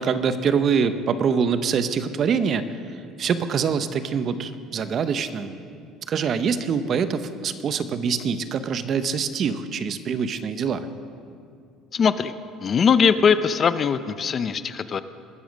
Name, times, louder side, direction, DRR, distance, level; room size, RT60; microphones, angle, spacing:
voice 1, 0.0-2.7 3.2-5.6 6.1-10.9, right 6 dB, 45° right, 11 dB, 0.7 m, -24 dB
voice 2, 11.9-12.3 12.6-15.0, left 6 dB, 35° left, 13 dB, 0.5 m, -20 dB
20.5 x 7.0 x 6.3 m, 2.4 s
cardioid pair, 120°, 0 cm